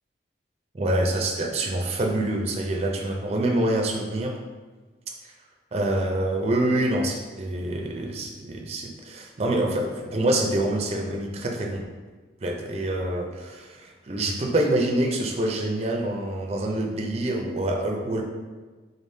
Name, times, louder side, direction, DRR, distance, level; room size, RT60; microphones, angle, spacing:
voice 1, 0.7-4.4 5.2-5.3 5.7-11.8 12.4-18.2, right 1 dB, 35° right, 1 dB, 0.5 m, -26 dB
4.0 x 3.4 x 2.7 m, 1.4 s
head